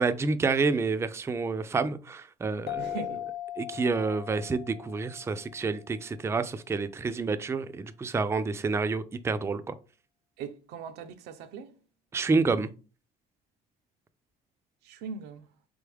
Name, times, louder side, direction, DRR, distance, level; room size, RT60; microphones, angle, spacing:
voice 1, 0.0-3.0 3.6-9.7 12.1-12.7, right 4 dB, 15° right, 0.4 m, -28 dB
sound 1, 2.7-6.0, left 13 dB, 75° left, 0.4 m, -39 dB
voice 2, 2.7-3.2 10.4-11.8 14.8-15.5, right 5 dB, 85° right, 0.6 m, -40 dB
3.8 x 3.5 x 3.4 m
cardioid pair, 110°, 17 cm